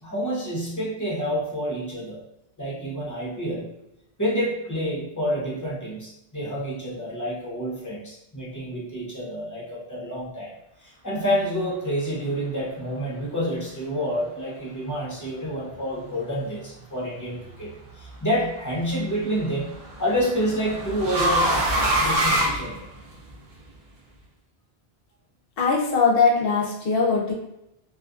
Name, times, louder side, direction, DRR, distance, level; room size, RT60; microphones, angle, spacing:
voice 1, 0.0-2.2 2.6-3.7 4.2-10.5 10.8-17.7 18.0-21.7 22.0-22.8, equal, 20° left, -6 dB, 0.6 m, -28 dB
sound 1, 17.4-17.9 19.3-23.3, right 1 dB, 55° right, 0.7 m, -24 dB
voice 2, 25.6-27.3, left 4 dB, 70° left, -3 dB, 0.8 m, -21 dB
2.4 x 2.4 x 2.4 m, 0.85 s
omnidirectional pair, 1.0 m